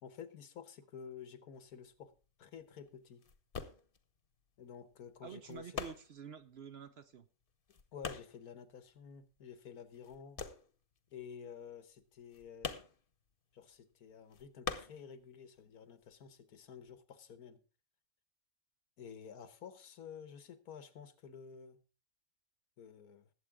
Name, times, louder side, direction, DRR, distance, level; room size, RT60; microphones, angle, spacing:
voice 1, 0.0-2.1 2.4-3.2 4.6-5.8 7.9-10.4 11.1-12.8 13.5-17.6 19.0-21.8 22.8-23.3, left 7 dB, 90° left, 1.6 m, -51 dB
sound 1, 1.5-9.6 9.8-15.7 16.0-17.0, left 5 dB, 40° left, 1.1 m, -46 dB
voice 2, 5.2-7.3, right 7 dB, 55° right, 0.8 m, -49 dB
20.0 x 7.9 x 3.6 m
omnidirectional pair, 1.5 m